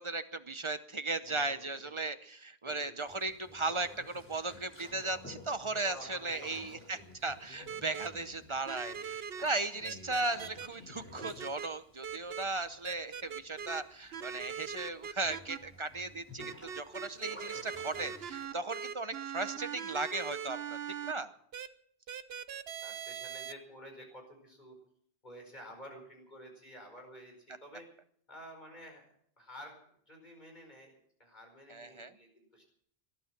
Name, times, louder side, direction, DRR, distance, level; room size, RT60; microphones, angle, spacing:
voice 1, 0.0-20.8 21.0-21.3 31.7-32.1, right 3 dB, 30° right, 12 dB, 0.7 m, -36 dB
voice 2, 1.2-2.1 2.6-3.0 5.9-6.8 12.4-12.5 22.8-24.8 25.2-27.9 28.3-29.0 29.4-32.6, equal, 40° left, 3 dB, 5.0 m, -51 dB
Boat Water vehicle, 3.1-18.5, left 1 dB, 10° left, 4.5 m, -53 dB
sound 1, 7.7-8.1 8.7-9.4 9.8-10.7 11.2-11.7 12.0-12.4 12.8-13.8 14.1-15.6 16.4-21.1 21.5-21.7 22.1-23.5, right 7 dB, 65° right, 1.0 m, -41 dB
19.5 x 12.0 x 6.0 m, 0.64 s
omnidirectional pair, 1.1 m